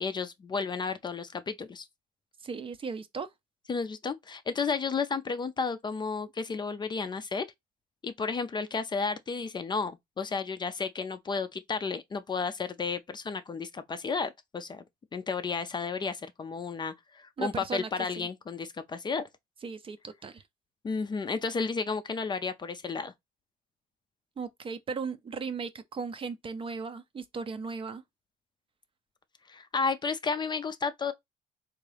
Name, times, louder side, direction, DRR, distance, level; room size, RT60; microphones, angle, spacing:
voice 1, 0.0-1.9 3.7-7.5 8.0-14.8 15.1-19.3 20.8-23.1 29.5-31.1, left 4 dB, 25° left, 0.4 m, -32 dB
voice 2, 2.4-3.3 17.4-18.3 19.6-20.4 24.4-28.0, right 5 dB, 30° right, 0.5 m, -37 dB
3.6 x 2.6 x 3.3 m
cardioid pair, 110°, 17 cm